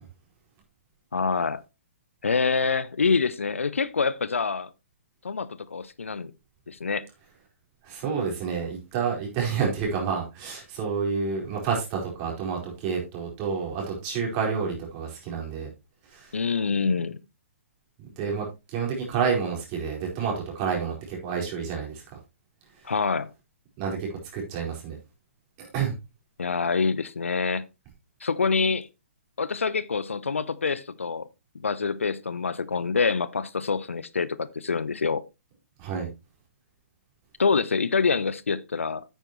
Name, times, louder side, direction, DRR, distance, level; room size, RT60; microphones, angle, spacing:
voice 1, 1.1-1.6 2.2-4.7 5.2-6.3 6.7-7.0 16.3-17.2 22.8-23.3 26.4-27.6 28.2-28.9 29.4-31.3 31.6-35.2 37.4-39.0, left 5 dB, 70° left, 0.6 m, -26 dB
voice 2, 7.8-15.7 16.1-16.3 18.2-22.0 23.8-24.0 24.3-25.0 25.6-25.9 35.8-36.1, right 6 dB, 30° right, 4.6 m, -29 dB
9.1 x 9.1 x 3.0 m
figure-of-eight pair, 125°, 7 cm